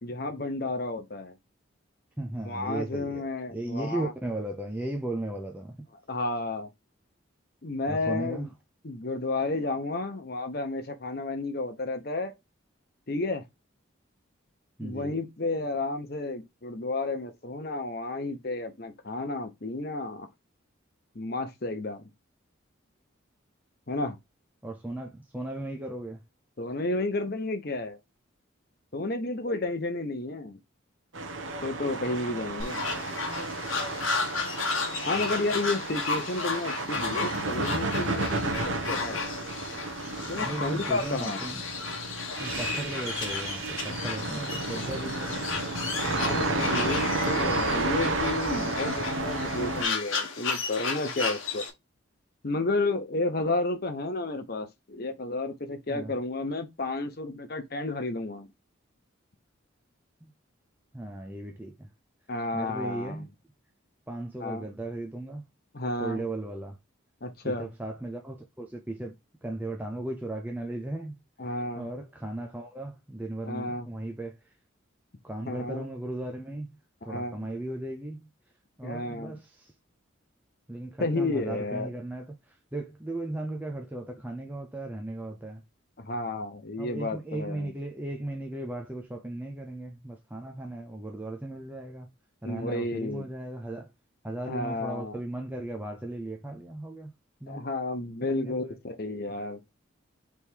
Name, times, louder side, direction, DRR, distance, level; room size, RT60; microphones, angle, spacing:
voice 1, 0.0-1.3 2.4-4.1 6.1-6.7 7.6-8.5 8.8-12.3 13.1-13.5 14.8-20.3 21.1-22.0 23.9-24.2 26.6-28.0 28.9-30.6 31.6-32.8 35.1-39.3 40.3-41.4 46.0-51.7 52.4-58.5 62.3-63.2 64.4-64.7 65.7-66.2 67.2-67.7 71.4-71.9 73.5-73.9 75.5-75.9 77.0-77.4 78.8-79.3 81.0-81.9 86.0-87.7 92.4-93.3 94.5-95.2 97.5-99.6, left 2 dB, 50° left, 0.8 m, -32 dB
voice 2, 2.2-5.8 7.9-8.5 14.8-15.1 24.6-26.2 40.3-41.6 42.4-45.5 55.9-56.1 60.2-60.3 60.9-61.9 62.5-63.3 64.1-65.5 66.0-66.8 67.4-69.1 69.4-71.2 71.8-74.5 75.2-76.8 77.0-78.3 78.8-79.7 80.7-85.6 86.8-92.1 92.4-93.9 94.2-97.1 97.4-97.6 98.2-98.8, right 1 dB, 10° right, 0.5 m, -36 dB
sound 1, 31.1-49.8, right 2 dB, 70° right, 0.9 m, -32 dB
sound 2, 32.6-51.7, left 4 dB, 85° left, 1.1 m, -34 dB
3.5 x 3.1 x 4.4 m
head